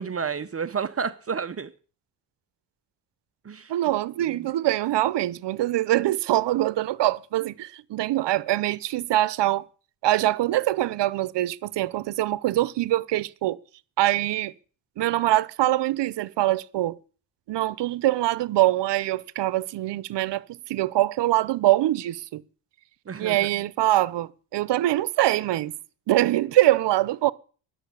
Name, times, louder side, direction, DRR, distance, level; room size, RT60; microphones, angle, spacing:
voice 1, 0.0-1.7 3.4-3.7 4.4-4.5 23.1-23.7, right 6 dB, 35° right, 0.8 m, -31 dB
voice 2, 3.7-9.6 10.0-13.6 14.0-14.5 15.0-17.0 17.5-22.4 23.2-25.7 26.1-27.3, right 15 dB, 75° right, 0.8 m, -24 dB
11.5 x 7.4 x 9.8 m
cardioid pair, 85°, 42 cm